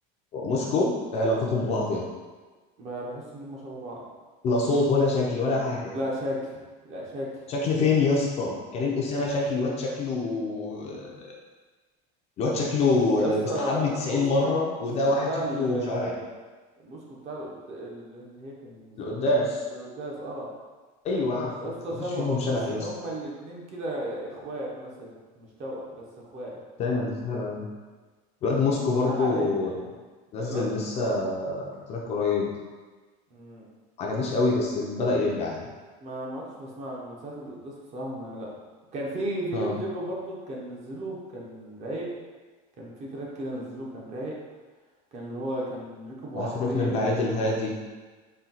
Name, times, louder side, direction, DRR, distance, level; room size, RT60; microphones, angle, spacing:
voice 1, 0.3-2.0 4.4-5.9 7.5-11.3 12.4-16.1 19.0-19.6 21.0-21.7 22.2-22.9 26.8-27.7 28.4-29.7 30.3-32.5 34.0-35.7 39.5-39.8 46.3-47.7, left 3 dB, 30° left, -2 dB, 0.5 m, -26 dB
voice 2, 2.8-4.0 5.9-6.4 6.8-7.4 13.2-16.3 16.8-19.3 19.7-20.5 21.6-26.5 29.0-29.9 30.3-31.2 33.3-33.7 36.0-38.5 38.9-42.1 42.8-44.4 45.1-47.5, right 1 dB, 35° right, -3 dB, 0.8 m, -35 dB
4.3 x 2.2 x 3.8 m, 1.3 s
cardioid pair, 165°, 20 cm